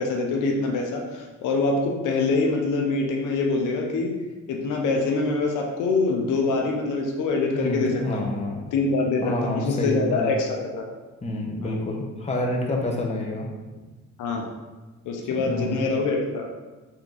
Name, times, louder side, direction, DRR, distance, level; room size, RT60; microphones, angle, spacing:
voice 1, 0.0-4.1 4.5-8.3 8.7-10.8 11.6-11.7 14.2-14.5 15.0-16.5, left 3 dB, 85° left, 1 dB, 0.7 m, -24 dB
voice 2, 7.5-8.6 9.2-10.3 11.2-13.5 15.4-15.8, left 1 dB, 20° left, 0 dB, 0.8 m, -28 dB
3.6 x 2.9 x 3.8 m, 1.2 s
cardioid pair, 90°, 30 cm